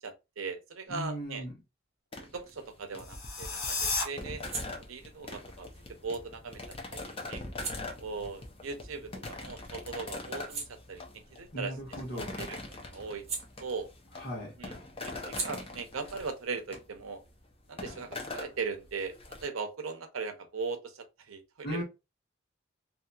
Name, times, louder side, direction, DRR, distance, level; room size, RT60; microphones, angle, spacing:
voice 1, 0.0-1.4 2.2-4.4 4.7-5.7 6.0-6.6 6.9-7.4 8.0-11.0 11.3-11.7 12.1-13.3 13.6-13.9 14.6-14.8 15.0-17.2 17.7-19.1 19.4-21.8, right 4 dB, 90° right, 0.6 m, -39 dB
voice 2, 0.9-1.5 11.5-12.3 14.2-14.5 21.6-21.8, equal, 50° left, 1.5 m, -37 dB
sound 1, 2.1-19.4, left 2 dB, 25° left, 0.5 m, -43 dB
sound 2, 3.0-4.0, left 3 dB, 75° left, 0.9 m, -32 dB
sound 3, 4.3-9.6 10.0-14.2 14.5-17.9, right 4 dB, 30° right, 0.7 m, -45 dB
2.9 x 2.7 x 2.3 m
head